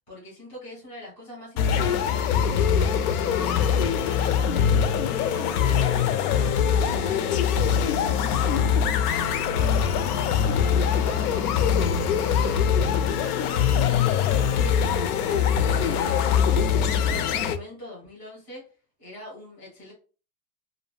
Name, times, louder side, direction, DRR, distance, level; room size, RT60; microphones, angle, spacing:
voice 1, 0.1-4.8 5.2-8.9 9.4-12.0 12.3-16.6 16.9-18.6 19.0-19.9, left 1 dB, 5° left, -7 dB, 0.4 m, -43 dB
sound 1, 1.6-17.6, left 7 dB, 75° left, 0.5 m, -23 dB
2.3 x 2.2 x 3.2 m, 0.36 s
supercardioid pair, 175°, 46 cm